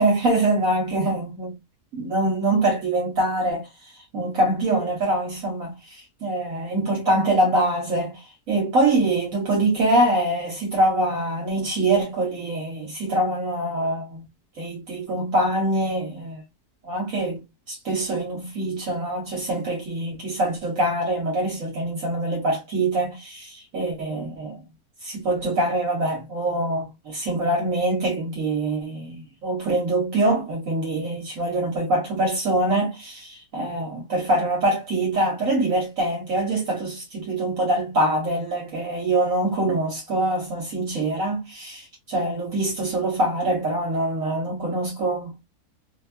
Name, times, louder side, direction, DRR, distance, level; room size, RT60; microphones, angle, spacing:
voice 1, 0.0-1.6 1.9-14.2 14.6-16.4 16.8-24.6 25.0-41.4 42.1-45.4, right 1 dB, 60° right, 1.3 m, -24 dB
3.0 x 2.3 x 2.4 m
omnidirectional pair, 1.6 m